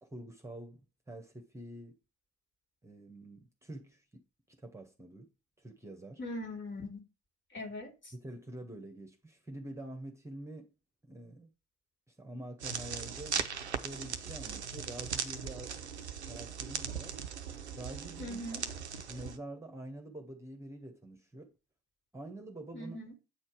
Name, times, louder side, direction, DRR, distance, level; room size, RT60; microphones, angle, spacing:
voice 1, 0.0-2.0 2.8-4.2 4.5-5.3 5.6-6.2 8.1-10.7 11.1-11.5 12.2-13.4 13.7-15.7 16.2-17.2 17.8-18.6 19.1-21.5 22.1-23.0, right 1 dB, 10° right, 1.5 m, -46 dB
voice 2, 6.2-7.0 7.5-8.1 18.2-18.7 22.7-23.1, left 1 dB, 35° left, 2.7 m, -41 dB
sound 1, 12.6-19.4, right 7 dB, 85° right, 0.5 m, -39 dB
8.6 x 4.3 x 4.8 m
figure-of-eight pair, 45°, 33 cm